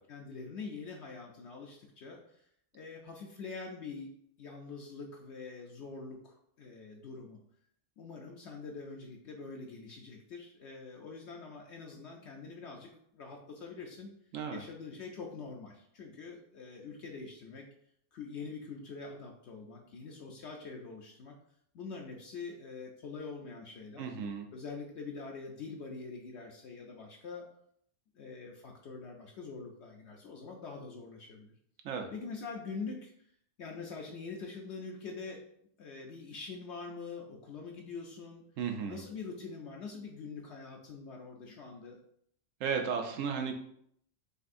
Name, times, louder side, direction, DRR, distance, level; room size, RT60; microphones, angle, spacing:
voice 1, 0.1-2.2 2.7-4.1 4.4-7.4 8.0-14.1 14.5-17.7 18.1-21.3 21.7-24.0 24.5-27.4 28.1-31.5 32.1-33.1 33.6-35.4 35.8-38.4 38.9-42.0, left 4 dB, 65° left, 0 dB, 0.9 m, -44 dB
voice 2, 14.3-14.6 24.0-24.5 31.8-32.1 38.6-39.0 42.6-43.5, right 6 dB, 80° right, 4 dB, 1.1 m, -34 dB
6.6 x 2.6 x 2.6 m, 0.69 s
omnidirectional pair, 1.3 m